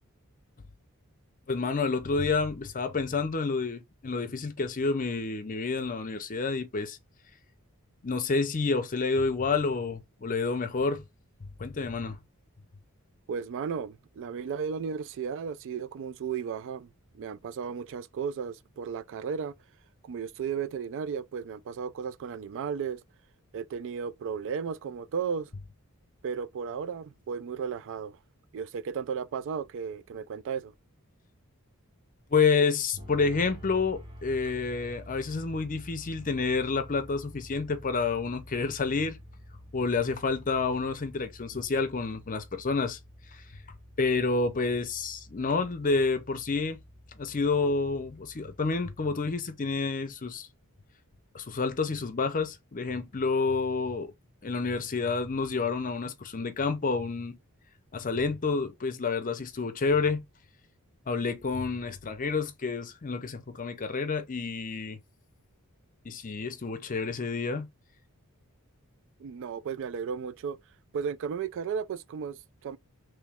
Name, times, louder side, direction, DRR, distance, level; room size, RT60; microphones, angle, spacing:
voice 1, 1.5-7.0 8.0-11.0 11.6-12.2 32.3-39.2 39.7-43.0 44.0-46.8 47.2-50.5 51.3-54.1 54.4-57.4 57.9-60.2 61.1-65.0 66.0-67.7, left 4 dB, 35° left, 0.6 m, -29 dB
voice 2, 13.3-16.9 17.1-19.5 20.0-23.0 23.5-25.5 26.2-28.2 28.5-30.7 69.2-70.6 70.9-72.8, right 6 dB, 55° right, 0.3 m, -34 dB
sound 1, 33.0-49.0, equal, 25° right, 1.7 m, -49 dB
3.1 x 3.0 x 3.5 m
head